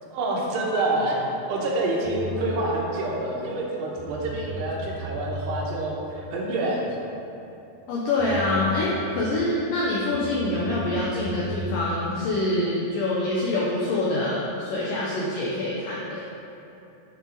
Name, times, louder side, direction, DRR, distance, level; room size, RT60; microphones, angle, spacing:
voice 1, 0.1-1.2 1.5-6.9, right 2 dB, 75° right, -3 dB, 3.1 m, -27 dB
sound 1, 2.0-2.6 3.6-3.7 4.0-5.7 7.8-7.9 8.2-9.4 10.1-11.8, equal, 55° left, 2.1 m, -35 dB
voice 2, 7.9-16.2, left 2 dB, 80° left, -6 dB, 1.9 m, -25 dB
12.0 x 5.4 x 3.9 m, 2.8 s
omnidirectional pair, 5.0 m